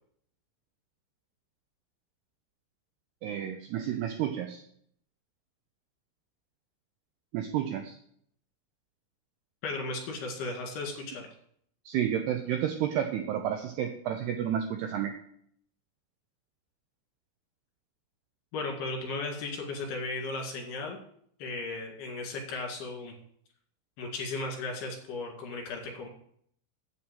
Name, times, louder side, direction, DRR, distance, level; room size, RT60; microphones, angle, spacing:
voice 1, 3.2-4.6 7.3-8.0 11.9-15.2, right 10 dB, 90° right, 5 dB, 2.3 m, -31 dB
voice 2, 9.6-11.3 18.5-21.0 21.4-23.1 24.0-26.1, left 3 dB, 60° left, 1 dB, 3.8 m, -36 dB
8.8 x 6.3 x 7.6 m, 0.66 s
omnidirectional pair, 5.7 m